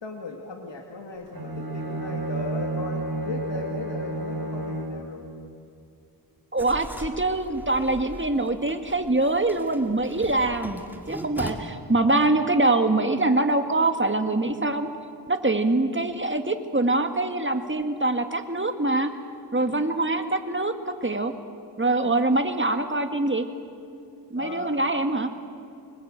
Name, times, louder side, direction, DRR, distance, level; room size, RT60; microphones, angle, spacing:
voice 1, 0.0-5.3 19.7-19.8 22.0-22.2 24.4-24.9, left 3 dB, 85° left, 2 dB, 2.2 m, -37 dB
Bowed string instrument, 1.3-5.1, right 2 dB, 55° right, 4.8 m, -31 dB
voice 2, 6.5-14.9 15.3-19.1 19.5-21.3 21.8-23.5 24.3-25.3, right 2 dB, 25° right, 7 dB, 1.9 m, -24 dB
Writing, 6.6-11.5, right 1 dB, 5° right, 2.4 m, -40 dB
25.5 x 21.0 x 8.9 m, 2.4 s
wide cardioid pair, 65°, 43 cm